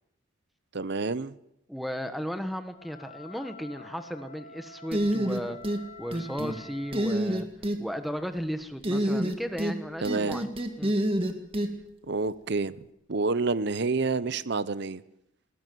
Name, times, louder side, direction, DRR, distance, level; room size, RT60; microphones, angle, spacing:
voice 1, 0.7-1.3 10.0-10.4 12.1-12.8 13.1-15.0, right 3 dB, 55° right, 17 dB, 0.7 m, -28 dB
voice 2, 1.7-5.6 6.0-7.5 7.8-10.5 10.8-10.9, equal, ahead, 8 dB, 1.4 m, -35 dB
Wind instrument woodwind instrument, 2.6-7.3, left 2 dB, 35° left, 4.0 m, -48 dB
sound 1, 4.9-5.8 6.1-6.6 6.9-7.8 8.8-9.8 10.0-11.7, right 1 dB, 30° right, 2.0 m, -27 dB
20.0 x 17.5 x 7.9 m, 0.85 s
head